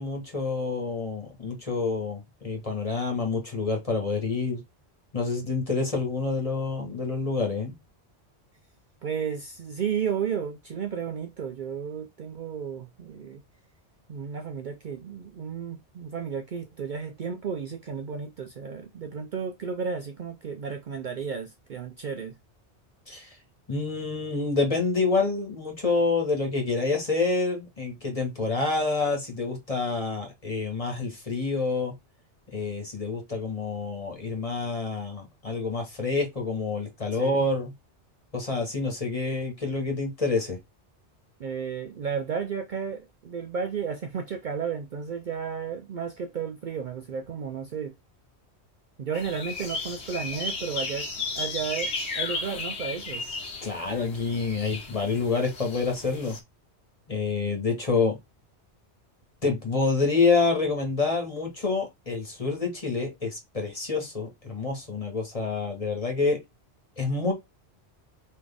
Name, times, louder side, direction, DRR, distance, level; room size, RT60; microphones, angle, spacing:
voice 1, 0.0-4.6 5.1-7.7 23.1-23.4 23.7-31.9 32.5-37.7 38.3-40.6 53.6-56.4 57.1-58.2 59.4-66.4 67.0-67.3, left 3 dB, 30° left, 1.7 m, -27 dB
voice 2, 9.0-13.4 14.1-22.4 37.1-37.4 41.4-47.9 49.0-51.1 51.3-53.2, right 6 dB, 55° right, 0.6 m, -33 dB
sound 1, 49.1-56.4, left 3 dB, 75° left, 1.5 m, -34 dB
4.2 x 3.2 x 3.4 m
omnidirectional pair, 1.1 m